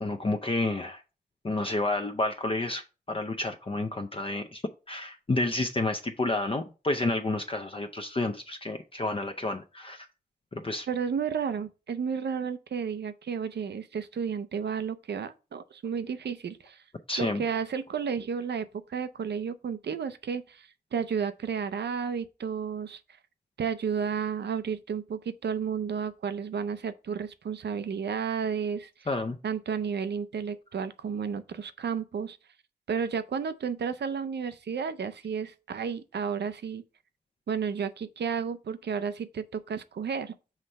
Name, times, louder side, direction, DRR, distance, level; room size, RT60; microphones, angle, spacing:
voice 1, 0.0-1.0 1.4-4.6 4.9-10.1 10.5-10.9 17.1-17.4 29.1-29.4, left 2 dB, 30° left, 0.5 m, -30 dB
voice 2, 10.9-16.8 17.2-23.0 23.6-28.9 29.4-32.4 32.9-36.8 37.5-40.3, right 6 dB, 90° right, 0.5 m, -32 dB
5.8 x 3.2 x 5.3 m
wide cardioid pair, 110°, 17 cm